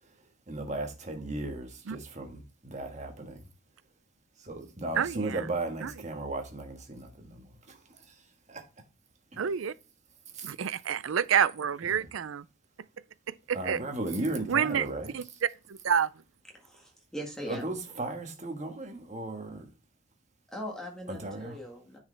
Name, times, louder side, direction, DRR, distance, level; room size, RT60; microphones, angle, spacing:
voice 1, 0.5-3.4 4.4-8.1 8.5-8.6 9.3-9.4 10.3-10.5 11.9-12.1 13.5-15.2 17.4-19.6 21.1-21.6, right 2 dB, 35° right, 1.5 m, -36 dB
voice 2, 5.0-5.5 5.8-5.9 9.4-9.7 10.4-12.4 13.3-13.8 14.5-14.9 15.1-15.2 15.7-16.1, right 8 dB, 75° right, 0.4 m, -28 dB
voice 3, 16.5-17.7 20.5-22.0, equal, 5° left, 1.7 m, -40 dB
9.7 x 4.8 x 3.3 m
head